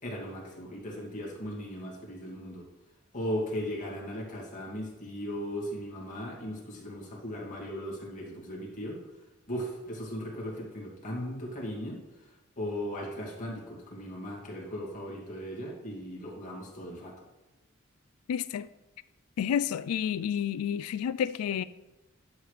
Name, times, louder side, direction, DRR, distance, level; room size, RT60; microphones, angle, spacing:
voice 1, 0.0-2.6 3.1-9.0 9.5-12.0 12.6-17.1, equal, 35° left, 2.2 m, -37 dB
voice 2, 18.3-18.7 19.4-21.6, left 8 dB, 85° left, 0.3 m, -30 dB
11.0 x 6.4 x 3.3 m
head